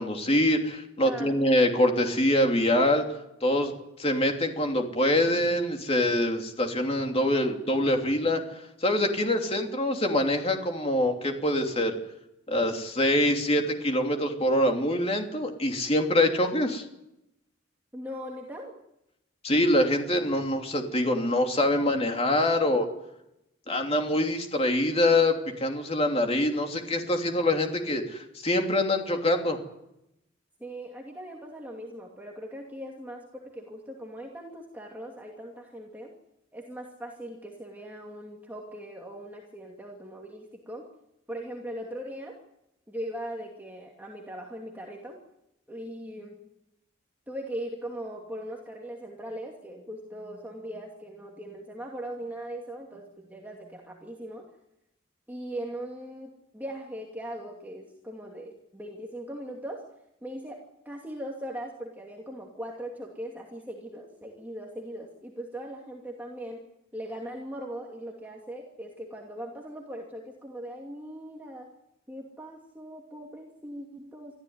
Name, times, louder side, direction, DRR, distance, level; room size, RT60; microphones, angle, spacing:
voice 1, 0.0-3.0 3.4-3.7 4.0-11.9 12.5-16.8 19.4-22.9 23.7-29.6, left 1 dB, 30° left, 3 dB, 2.9 m, -25 dB
voice 2, 1.0-1.4 17.9-18.8 30.6-36.1 36.5-40.9 41.3-42.4 42.9-45.2 45.7-46.4 47.3-54.5 55.3-59.8 60.2-66.6 66.9-71.7 72.1-74.4, right 1 dB, 10° right, -1 dB, 2.6 m, -40 dB
24.5 x 14.5 x 9.6 m, 0.86 s
head